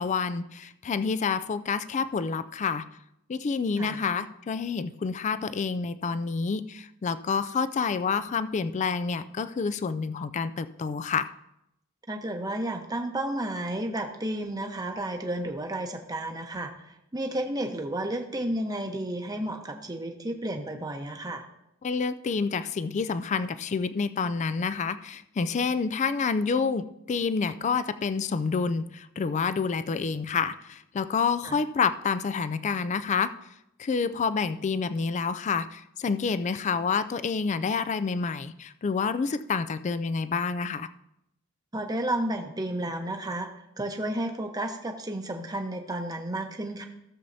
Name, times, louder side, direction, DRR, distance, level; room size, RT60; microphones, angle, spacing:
voice 1, 0.0-2.8 3.3-11.3 21.8-33.3 33.8-40.9, left 5 dB, 35° left, 13 dB, 0.3 m, -28 dB
voice 2, 12.1-21.4 31.4-31.6 41.7-43.5 43.8-46.8, right 1 dB, 20° right, 4 dB, 0.9 m, -32 dB
15.5 x 7.0 x 2.7 m, 0.83 s
head